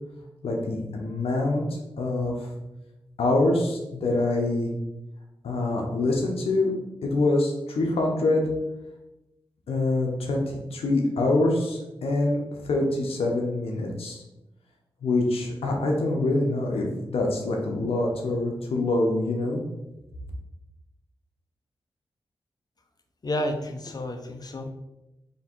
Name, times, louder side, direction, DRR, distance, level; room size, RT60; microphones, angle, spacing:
voice 1, 0.4-1.6 2.0-2.5 3.2-4.7 5.4-6.7 7.0-8.4 9.7-12.4 12.6-14.2 15.0-19.6, left 2 dB, 85° left, 1 dB, 0.7 m, -25 dB
voice 2, 23.2-24.7, left 1 dB, 45° left, 4 dB, 0.7 m, -30 dB
3.4 x 2.8 x 4.3 m, 0.95 s
cardioid pair, 55°, 10 cm